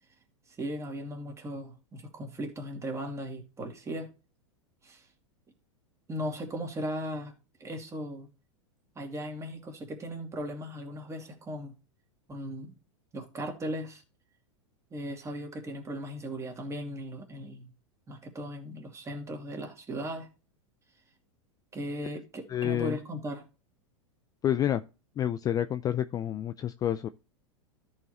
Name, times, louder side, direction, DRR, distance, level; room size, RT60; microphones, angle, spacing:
voice 1, 0.5-4.1 4.8-5.1 6.1-7.3 7.6-8.3 9.0-11.7 12.3-12.7 13.1-14.0 14.9-17.7 18.1-20.3 21.7-23.4, equal, 20° right, 2.5 m, -37 dB
voice 2, 22.5-23.0 24.4-24.8 25.2-27.1, left 10 dB, 25° left, 0.4 m, -29 dB
13.5 x 4.8 x 3.1 m
hypercardioid pair, 100°, 16 cm